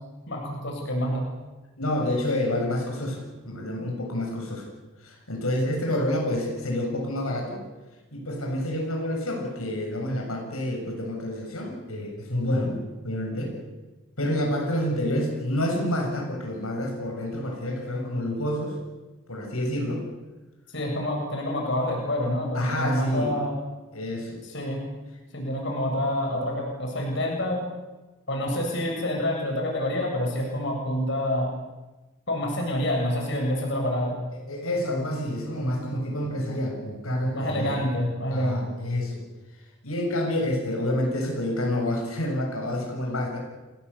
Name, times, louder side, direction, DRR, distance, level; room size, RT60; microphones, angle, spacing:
voice 1, 0.3-1.2 20.7-23.6 24.5-24.9 25.3-27.6 28.3-31.5 32.3-34.1 37.3-38.6, left 1 dB, 55° left, 0 dB, 7.7 m, -27 dB
voice 2, 1.8-4.7 5.0-7.6 8.1-12.8 13.0-13.6 14.2-18.8 19.3-20.0 22.5-23.3 23.9-24.4 34.5-37.8 38.3-39.2 39.8-43.4, left 1 dB, 80° left, 1 dB, 7.3 m, -28 dB
29.5 x 20.0 x 8.5 m, 1.1 s
head